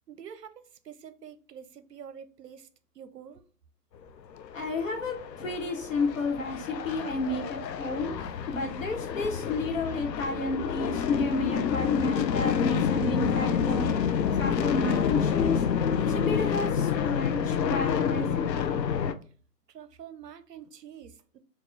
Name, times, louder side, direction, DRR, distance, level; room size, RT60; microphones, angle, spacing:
voice 1, 0.1-2.7 2.9-3.4 19.7-21.4, right 8 dB, 75° right, 0.6 m, -46 dB
sound 1, 4.4-19.1, left 7 dB, 90° left, 0.6 m, -28 dB
voice 2, 4.5-8.1 8.5-13.9 14.3-15.6 16.0-18.5, left 2 dB, 50° left, 1.2 m, -31 dB
4.6 x 2.3 x 3.1 m
hypercardioid pair, 165°, 49 cm